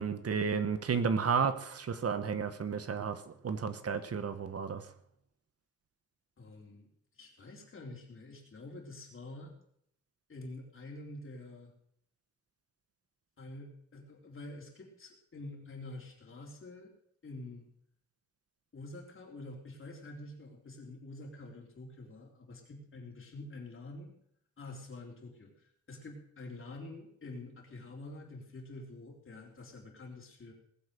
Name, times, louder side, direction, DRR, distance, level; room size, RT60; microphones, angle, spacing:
voice 1, 0.0-4.9, right 6 dB, 55° right, 11 dB, 1.1 m, -32 dB
voice 2, 6.4-6.9 7.1-9.5 10.3-11.7 13.4-16.9 17.2-17.7 18.7-24.1 24.6-30.5, left 2 dB, 45° left, 0 dB, 3.9 m, -47 dB
20.0 x 8.0 x 6.7 m, 0.71 s
wide cardioid pair, 145°, 30 cm